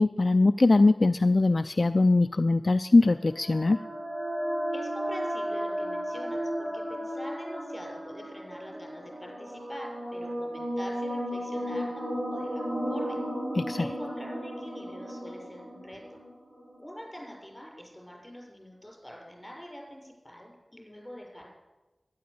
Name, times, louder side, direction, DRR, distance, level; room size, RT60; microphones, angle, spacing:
voice 1, 0.0-3.8 13.6-13.8, left 2 dB, 55° left, 10 dB, 0.4 m, -21 dB
sound 1, 3.1-16.8, equal, 40° right, 4.5 m, -34 dB
voice 2, 4.7-13.2 13.8-16.2 16.8-21.5, equal, 15° left, -1 dB, 6.8 m, -45 dB
12.0 x 11.0 x 8.5 m, 1.1 s
cardioid pair, 45°, 0 cm